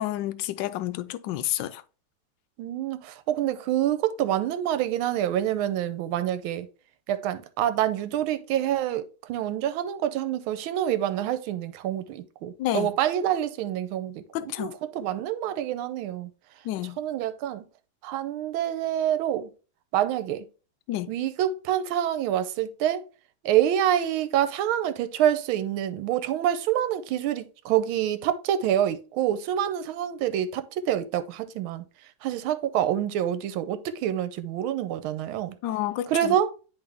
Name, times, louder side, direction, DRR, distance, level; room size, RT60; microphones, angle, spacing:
voice 1, 0.0-1.8 12.6-13.0 14.3-14.7 16.6-17.0 20.9-21.2 35.6-36.4, left 14 dB, 75° left, 1.1 m, -30 dB
voice 2, 2.6-6.7 7.1-9.0 9.3-16.3 17.0-17.6 18.0-19.5 19.9-20.4 21.1-23.0 23.4-31.8 32.2-35.5 36.1-36.5, right 11 dB, 80° right, 1.4 m, -27 dB
10.0 x 3.4 x 3.4 m
omnidirectional pair, 2.4 m